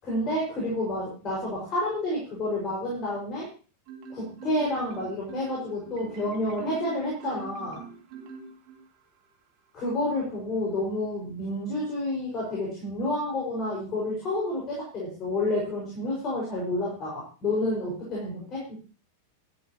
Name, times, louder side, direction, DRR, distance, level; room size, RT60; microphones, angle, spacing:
voice 1, 0.0-3.5 4.1-7.9 9.7-18.7, left 1 dB, 30° left, -3 dB, 5.9 m, -29 dB
Marimba xylophone, 3.9-9.0, right 5 dB, 45° right, 2.7 m, -42 dB
13.5 x 13.0 x 3.1 m, 0.35 s
figure-of-eight pair, 90°, 0 cm